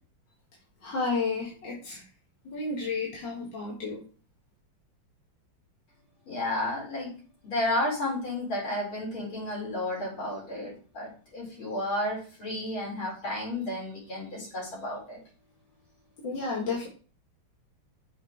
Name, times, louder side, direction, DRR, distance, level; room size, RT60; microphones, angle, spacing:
voice 1, 0.8-2.0 2.4-4.0 16.2-16.9, left 4 dB, 65° left, -4 dB, 2.5 m, -31 dB
voice 2, 6.3-7.1 7.4-15.2, left 1 dB, 80° left, -5 dB, 5.0 m, -32 dB
7.2 x 4.5 x 4.6 m, 0.39 s
omnidirectional pair, 2.3 m